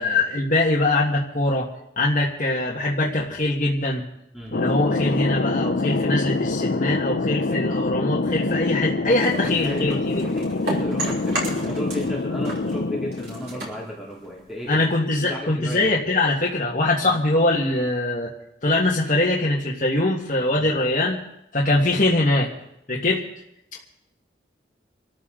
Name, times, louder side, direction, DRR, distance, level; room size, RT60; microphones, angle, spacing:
voice 1, 0.0-1.7 2.0-4.0 4.5-10.3 10.7-10.8 14.7-18.3 18.6-21.2 21.5-22.5 22.9-23.2, left 2 dB, 45° left, -4 dB, 1.7 m, -22 dB
Thunder, 4.5-13.8, left 3 dB, 65° left, 0.6 m, -25 dB
sound 1, 9.2-12.1 12.4-14.8, right 1 dB, 65° right, 5.2 m, -33 dB
voice 2, 9.6-14.9 15.1-15.9 17.0-17.1 20.6-20.7, equal, ahead, -6 dB, 2.5 m, -34 dB
26.5 x 14.0 x 3.9 m, 0.80 s
head